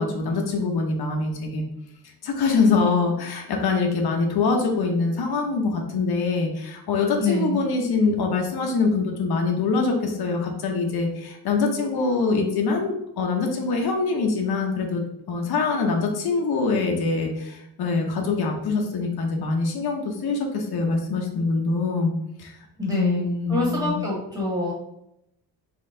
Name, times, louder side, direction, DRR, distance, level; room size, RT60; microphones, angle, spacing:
voice 1, 0.0-1.6 2.2-22.1 22.4-22.5 22.8-24.1, left 4 dB, 75° left, 1 dB, 0.9 m, -24 dB
voice 2, 7.2-7.6 22.8-24.7, left 2 dB, 10° right, -5 dB, 1.5 m, -26 dB
4.3 x 3.1 x 3.8 m, 0.81 s
wide cardioid pair, 165°, 38 cm